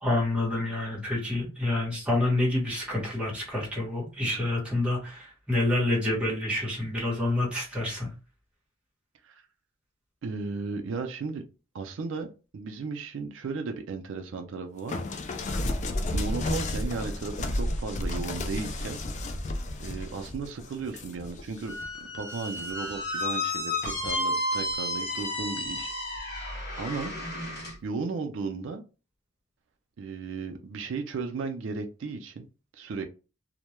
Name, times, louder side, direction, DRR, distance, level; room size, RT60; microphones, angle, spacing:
voice 1, 0.0-8.1, left 2 dB, 5° right, -3 dB, 1.0 m, -28 dB
voice 2, 10.2-11.4 11.7-15.0 16.1-19.0 19.3-19.4 19.8-21.7 22.0-25.9 26.8-27.1 27.8-28.8 30.0-32.5 32.7-33.0, right 4 dB, 70° right, 5 dB, 0.4 m, -35 dB
sound 1, 14.9-21.9 22.3-23.0 23.8-24.1, left 1 dB, 35° left, 0.3 m, -32 dB
Squeak, 21.7-27.8, left 1 dB, 55° left, 0.8 m, -32 dB
2.2 x 2.1 x 2.9 m, 0.32 s
head